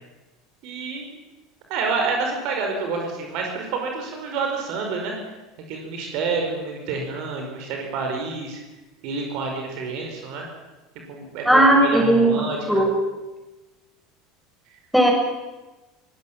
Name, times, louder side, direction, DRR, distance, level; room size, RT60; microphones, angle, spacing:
voice 1, 0.6-1.1 1.7-5.2 5.7-8.6 9.0-10.5 11.1-12.8, right 4 dB, 55° right, 2 dB, 5.2 m, -28 dB
voice 2, 11.5-12.3 12.7-12.9 14.9-15.1, right 1 dB, ahead, 0 dB, 7.2 m, -16 dB
23.5 x 18.5 x 7.5 m, 1.1 s
figure-of-eight pair, 70°, 0 cm